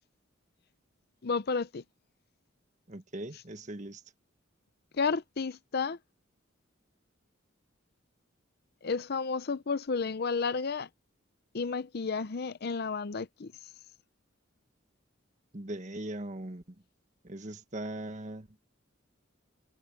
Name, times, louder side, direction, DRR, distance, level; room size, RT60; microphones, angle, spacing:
voice 1, 1.2-1.8 5.0-6.0 8.8-10.9 11.5-13.5, left 4 dB, 50° left, 0.6 m, -31 dB
voice 2, 2.9-4.0 15.5-16.6 17.2-18.5, right 1 dB, 40° right, 1.5 m, -39 dB
head